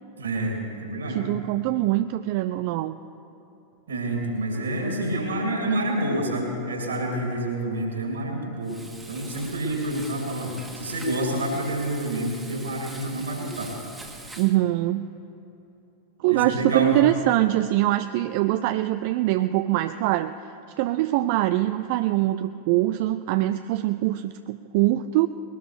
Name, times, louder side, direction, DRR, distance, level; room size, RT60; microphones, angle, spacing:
voice 1, 0.2-1.2 3.9-8.8 9.1-13.7 16.3-17.0, right 1 dB, 70° right, 0 dB, 3.1 m, -28 dB
voice 2, 1.1-3.0 14.4-15.1 16.2-20.3 20.8-25.3, right 15 dB, 50° right, 11 dB, 0.3 m, -23 dB
Frying (food), 8.6-14.6, right 2 dB, 10° right, 1.6 m, -43 dB
21.0 x 18.5 x 3.4 m, 2.9 s
figure-of-eight pair, 90°, 0 cm